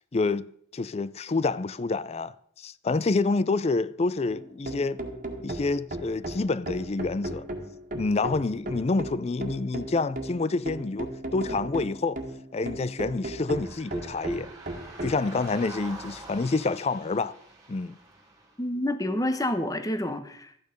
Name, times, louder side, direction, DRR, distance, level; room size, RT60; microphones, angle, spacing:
voice 1, 0.1-0.5 0.7-5.0 5.4-7.5 7.9-12.2 12.5-14.5 15.0-17.3 17.7-18.0, left 3 dB, 35° left, 0.4 m, -28 dB
sound 1, 4.3-15.2, right 1 dB, 45° right, 1.8 m, -36 dB
sound 2, 13.4-18.6, right 2 dB, 20° right, 2.6 m, -46 dB
voice 2, 18.6-20.6, left 1 dB, 20° left, 1.1 m, -28 dB
13.5 x 9.3 x 5.2 m
head